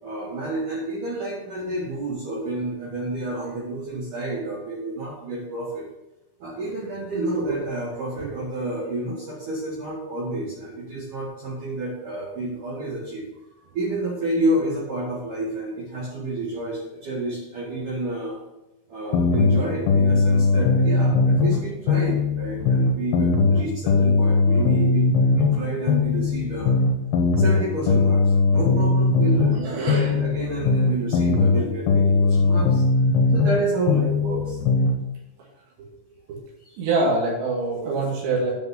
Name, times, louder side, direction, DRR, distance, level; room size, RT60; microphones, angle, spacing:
voice 1, 0.0-5.8 6.4-13.2 13.7-18.4 18.9-26.8 27.4-32.8 33.3-34.6 36.6-36.7, right 2 dB, 55° right, -6 dB, 3.4 m, -29 dB
sound 1, 19.1-21.6 21.9-25.6 25.9-29.6 29.9-33.6 33.9-34.9, left 3 dB, 70° left, 3.0 m, -19 dB
voice 2, 29.6-30.5 35.8-35.9 36.3-36.4 36.8-38.5, right 3 dB, 80° right, -3 dB, 4.5 m, -25 dB
9.5 x 5.6 x 5.9 m, 0.95 s
omnidirectional pair, 4.9 m